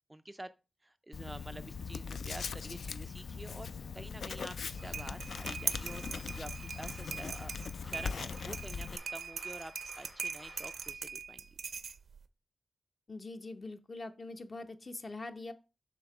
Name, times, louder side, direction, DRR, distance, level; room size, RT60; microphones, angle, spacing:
voice 1, 0.1-0.5 0.8-7.5 7.8-11.4, right 1 dB, 10° right, 10 dB, 0.3 m, -48 dB
Writing, 1.1-9.0, left 5 dB, 75° left, 0.3 m, -40 dB
sound 1, 4.6-12.3, right 6 dB, 80° right, 0.5 m, -41 dB
sound 2, 4.8-10.9, left 2 dB, 60° left, 2.1 m, -57 dB
voice 2, 13.1-15.5, left 2 dB, 35° left, 9 dB, 0.7 m, -43 dB
7.7 x 2.8 x 5.9 m, 0.30 s
wide cardioid pair, 150°, 0 cm